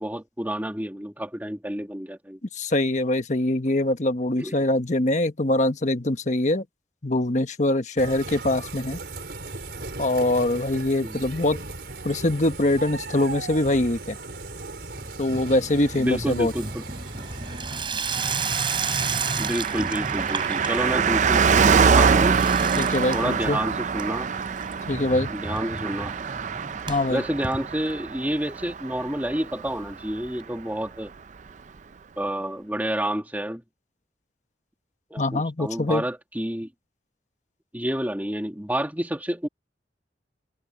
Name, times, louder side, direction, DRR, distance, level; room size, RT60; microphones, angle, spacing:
voice 1, 0.0-2.4 4.4-4.5 11.0-11.2 16.0-16.8 19.4-22.4 23.1-24.3 25.3-26.1 27.1-31.1 32.2-33.6 35.1-36.7 37.7-39.5, right 1 dB, 10° right, 2.2 m, -29 dB
voice 2, 2.5-6.6 7.0-9.0 10.0-11.6 12.0-14.2 15.2-16.5 22.8-23.6 24.9-25.3 26.9-27.2 35.2-36.0, left 1 dB, 45° left, 1.3 m, -23 dB
sound 1, 8.0-17.8, right 3 dB, 65° right, 5.2 m, -37 dB
Water tap faucet / Sink (filling or washing), 11.2-11.9 12.2-12.8 13.1-28.3 28.7-28.8 29.0-29.1 29.3-29.4 30.4-30.5, right 4 dB, 30° right, 5.9 m, -34 dB
Car passing by, 18.1-29.9 30.2-30.3, right 6 dB, 45° right, 0.4 m, -24 dB
head